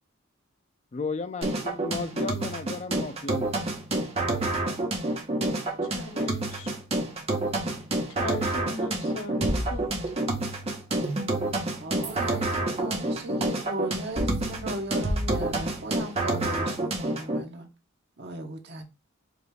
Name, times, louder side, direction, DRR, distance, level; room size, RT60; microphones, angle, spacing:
voice 1, 0.9-3.5, left 4 dB, 35° left, 0.4 m, -34 dB
sound 1, 1.4-17.4, right 2 dB, 30° right, 1.0 m, -28 dB
voice 2, 5.8-6.7 8.1-10.3, left 2 dB, 80° left, 0.9 m, -39 dB
voice 3, 11.8-17.7 18.2-18.8, right 1 dB, 55° right, 1.1 m, -37 dB
5.1 x 2.5 x 3.2 m
head